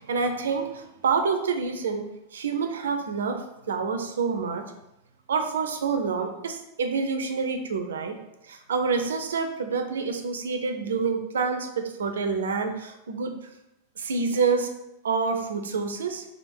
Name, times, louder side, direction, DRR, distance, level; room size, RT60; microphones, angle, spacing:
voice 1, 0.0-2.1 2.3-3.4 3.7-4.6 5.3-8.1 8.5-13.3 14.0-14.7 15.0-16.3, right 5 dB, 65° right, 6 dB, 0.4 m, -27 dB
3.5 x 2.4 x 4.4 m, 0.88 s
figure-of-eight pair, 90°, 0 cm